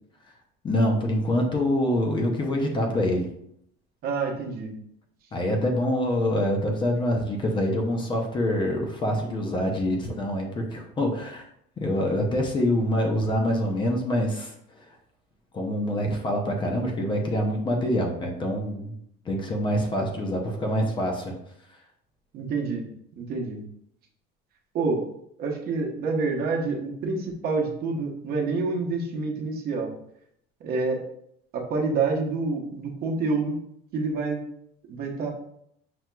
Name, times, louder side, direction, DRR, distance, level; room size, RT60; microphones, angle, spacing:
voice 1, 0.6-3.3 5.3-11.4 11.8-14.9 15.5-18.9 19.3-21.4, left 1 dB, 25° left, 2 dB, 0.5 m, -25 dB
voice 2, 4.0-4.7 22.3-22.8 23.2-23.6 24.7-25.1 25.4-29.9 30.6-31.0 31.5-33.6 33.9-34.4 34.9-35.3, right 4 dB, 50° right, 0 dB, 0.8 m, -27 dB
5.9 x 2.8 x 2.2 m, 0.71 s
cardioid pair, 170°, 21 cm